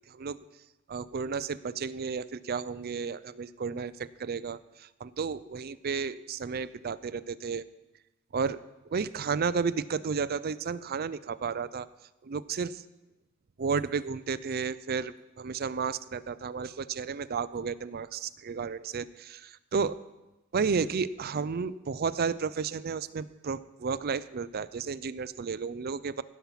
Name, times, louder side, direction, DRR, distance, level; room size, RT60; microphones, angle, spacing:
voice 1, 0.9-7.7 8.3-8.6 8.9-11.9 12.2-12.8 13.6-20.0 20.5-26.2, right 5 dB, 50° right, 16 dB, 0.5 m, -32 dB
16.5 x 7.1 x 5.8 m, 1.0 s
head